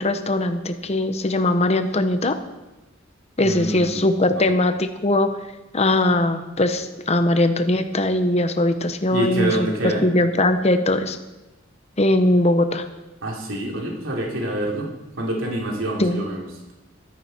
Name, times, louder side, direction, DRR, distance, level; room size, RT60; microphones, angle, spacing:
voice 1, 0.0-2.4 3.4-5.4 5.7-11.2 12.0-12.9 16.0-16.2, left 1 dB, 35° left, 8 dB, 1.0 m, -20 dB
voice 2, 3.4-4.0 4.3-4.5 9.1-10.1 13.2-14.9 15.2-16.5, right 1 dB, 85° right, -1 dB, 3.3 m, -26 dB
15.0 x 13.0 x 4.5 m, 1.0 s
head